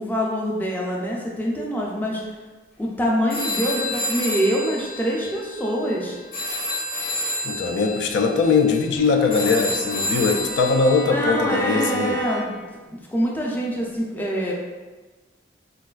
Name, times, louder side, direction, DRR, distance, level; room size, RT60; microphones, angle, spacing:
voice 1, 0.0-2.2 2.8-6.2 11.1-12.5 12.9-14.5, equal, 10° left, -3 dB, 0.4 m, -25 dB
sound 1, 3.3-11.0, left 1 dB, 50° left, 0.6 m, -30 dB
voice 2, 7.4-12.1, left 4 dB, 90° left, 4 dB, 0.3 m, -21 dB
Bowed string instrument, 9.0-12.8, right 2 dB, 60° right, 0.3 m, -32 dB
4.0 x 2.2 x 2.3 m, 1.3 s
head